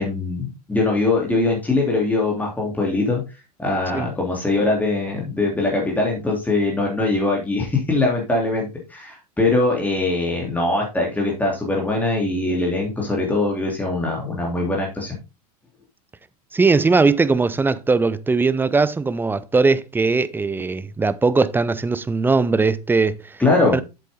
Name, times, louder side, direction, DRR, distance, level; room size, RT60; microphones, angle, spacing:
voice 1, 0.0-3.2 3.6-15.2 23.4-23.8, left 2 dB, 10° left, 2.9 m, -22 dB
voice 2, 16.5-23.2 23.7-23.8, right 4 dB, 10° right, 0.6 m, -19 dB
8.3 x 7.7 x 3.6 m
figure-of-eight pair, 80°, 20 cm